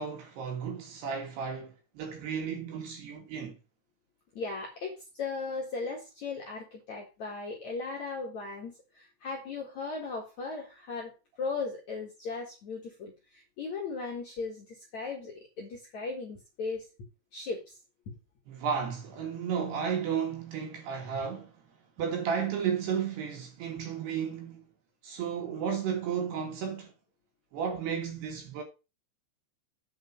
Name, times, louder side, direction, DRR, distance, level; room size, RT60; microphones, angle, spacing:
voice 1, 0.0-3.6 18.5-21.5 22.0-24.7 25.0-26.9 27.5-28.6, right 7 dB, 65° right, 3.3 m, -33 dB
voice 2, 4.3-11.1 11.4-16.8 17.3-17.8 18.1-18.2, left 4 dB, 55° left, 2.2 m, -37 dB
9.0 x 5.2 x 6.0 m
omnidirectional pair, 5.9 m